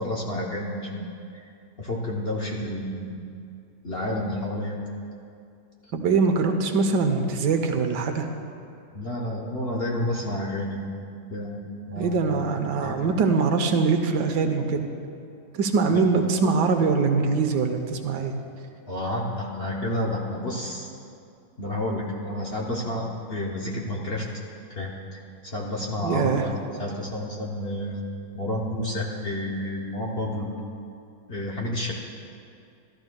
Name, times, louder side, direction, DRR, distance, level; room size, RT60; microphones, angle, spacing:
voice 1, 0.0-1.5 1.8-3.2 3.8-4.8 8.9-10.8 11.3-11.6 11.9-12.3 12.8-13.0 15.9-16.0 18.9-20.9 21.6-24.3 24.7-26.5 26.8-28.0 28.3-30.5 31.3-31.9, left 1 dB, 45° left, -3 dB, 0.9 m, -30 dB
voice 2, 5.9-8.3 12.0-14.9 15.5-18.4 26.0-26.5, right 4 dB, 75° right, 6 dB, 1.3 m, -23 dB
13.5 x 12.5 x 2.3 m, 2.6 s
omnidirectional pair, 1.9 m